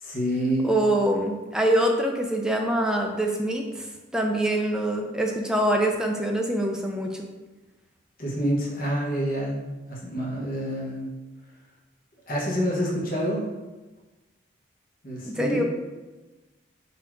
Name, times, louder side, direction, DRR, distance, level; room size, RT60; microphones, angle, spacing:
voice 1, 0.0-0.7 8.2-11.1 12.3-13.4 15.0-15.6, equal, 45° left, -3 dB, 1.1 m, -27 dB
voice 2, 0.6-3.9 4.1-7.3 15.2-15.6, right 1 dB, 5° right, 1 dB, 0.4 m, -24 dB
4.2 x 2.8 x 4.5 m, 1.2 s
head